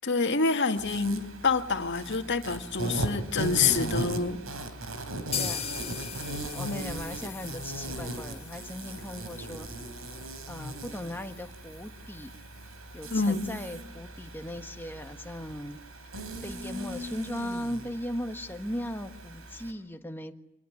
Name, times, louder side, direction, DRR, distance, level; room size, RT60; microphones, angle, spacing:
voice 1, 0.0-4.4 6.7-6.8 13.1-13.4, left 4 dB, 60° left, 6 dB, 2.0 m, -27 dB
Insect, 0.8-19.7, right 1 dB, 85° right, 3.8 m, -38 dB
sound 1, 5.3-13.1 13.4-13.5 13.8-13.9 14.3-14.4, left 7 dB, 30° left, 1.7 m, -41 dB
voice 2, 6.5-9.7 10.5-12.4 12.9-15.8 16.4-20.3, equal, 10° left, 6 dB, 1.5 m, -38 dB
26.0 x 19.5 x 9.6 m, 0.95 s
head